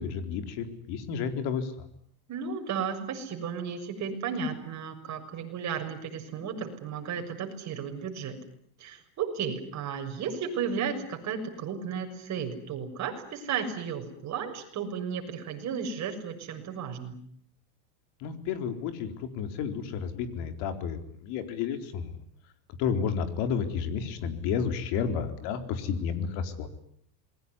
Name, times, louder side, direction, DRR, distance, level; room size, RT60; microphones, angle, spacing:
voice 1, 0.0-1.7 18.2-22.2 22.8-26.7, left 7 dB, 65° left, 8 dB, 4.2 m, -31 dB
voice 2, 2.3-8.4 8.8-17.2, right 6 dB, 40° right, 4 dB, 6.7 m, -34 dB
28.0 x 21.5 x 9.9 m, 0.66 s
cardioid pair, 145°, 43 cm